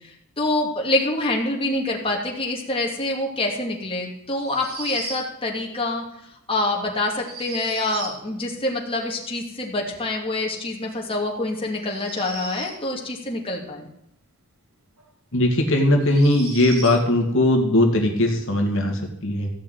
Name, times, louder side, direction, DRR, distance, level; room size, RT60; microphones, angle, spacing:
voice 1, 0.4-6.0 6.5-13.9, left 2 dB, 25° left, -1 dB, 2.6 m, -26 dB
sound 1, 4.3-5.3 7.1-8.2 11.8-12.8 15.0-15.1 16.0-17.0, right 2 dB, 75° right, 4.0 m, -36 dB
voice 2, 15.3-19.5, left 1 dB, 60° left, 2 dB, 2.3 m, -19 dB
15.0 x 6.5 x 9.4 m, 0.79 s
head